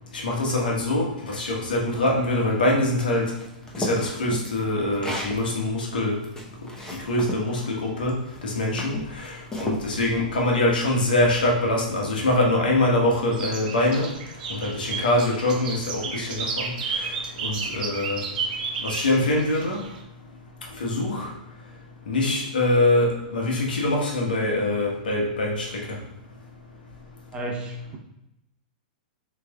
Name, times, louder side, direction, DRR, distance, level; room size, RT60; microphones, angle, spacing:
voice 1, 0.2-3.3 3.8-6.1 7.1-8.1 8.4-8.9 9.6-14.1 14.6-16.7 17.4-18.2 18.8-19.8 20.8-21.3 22.1-25.7, left 1 dB, 80° left, -1 dB, 1.3 m, -23 dB
sound 1, 3.3-5.4 5.9-7.4 8.2-8.4 8.8-9.8, left 1 dB, 10° left, 0.9 m, -33 dB
sound 2, 13.3-20.0, right 4 dB, 60° right, 0.8 m, -32 dB
voice 2, 27.3-28.0, right 1 dB, 20° right, 0 dB, 0.9 m, -32 dB
6.0 x 3.3 x 2.3 m, 0.85 s
hypercardioid pair, 115°, 5 cm